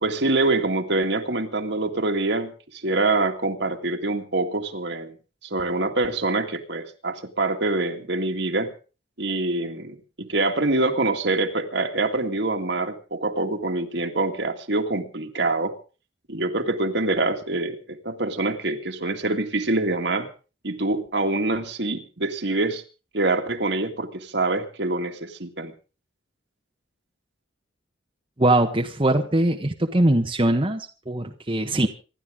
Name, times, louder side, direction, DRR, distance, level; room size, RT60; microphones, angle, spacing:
voice 1, 0.0-5.2 5.4-8.7 9.2-15.7 16.3-20.3 20.6-22.8 23.1-25.7, right 2 dB, 60° right, 5 dB, 2.1 m, -25 dB
voice 2, 28.4-31.9, right 1 dB, 25° right, 3 dB, 1.3 m, -21 dB
26.5 x 12.0 x 3.7 m, 0.35 s
head